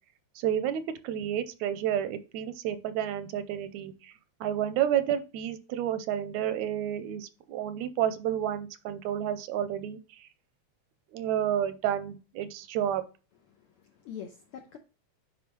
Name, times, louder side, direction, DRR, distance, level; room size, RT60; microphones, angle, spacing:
voice 1, 0.4-4.1 4.4-10.3 11.1-13.0, right 10 dB, 85° right, 12 dB, 2.0 m, -30 dB
voice 2, 13.5-14.8, left 8 dB, 80° left, 4 dB, 1.3 m, -44 dB
9.3 x 3.8 x 3.1 m, 0.33 s
omnidirectional pair, 3.3 m